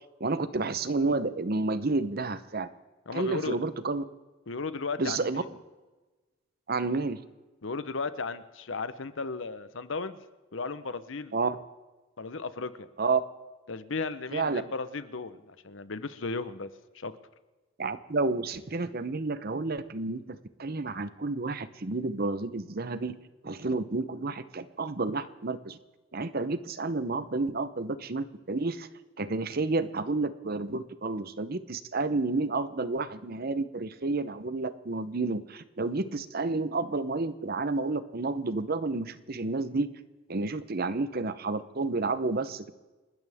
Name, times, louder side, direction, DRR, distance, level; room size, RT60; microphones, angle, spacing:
voice 1, 0.2-2.7 3.1-4.0 5.0-5.4 6.7-7.2 11.3-11.6 13.0-13.2 14.3-14.6 17.8-23.2 23.4-25.8 26.1-28.9 29.2-39.9 40.3-42.7, right 3 dB, 50° right, 13 dB, 0.8 m, -30 dB
voice 2, 3.1-3.6 4.5-5.5 7.6-10.2 10.5-11.4 12.2-12.9 13.7-16.7 16.9-17.1, left 4 dB, 65° left, 13 dB, 0.9 m, -35 dB
29.0 x 13.0 x 3.6 m, 1.2 s
head